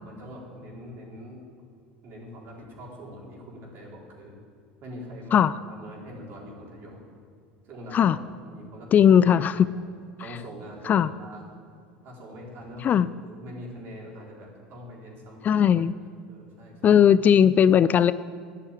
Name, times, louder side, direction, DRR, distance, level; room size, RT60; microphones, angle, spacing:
voice 1, 0.0-1.4 2.0-4.4 4.8-5.4 5.7-7.1 7.6-8.2 8.4-9.9 10.2-11.4 12.0-15.6 16.3-17.0, equal, 50° right, -2 dB, 4.2 m, -43 dB
voice 2, 8.9-9.7 10.9-11.1 12.8-13.1 15.4-15.9 16.8-18.1, left 8 dB, 35° left, 16 dB, 0.4 m, -18 dB
11.0 x 8.7 x 9.1 m, 2.3 s
hypercardioid pair, 75°, 5 cm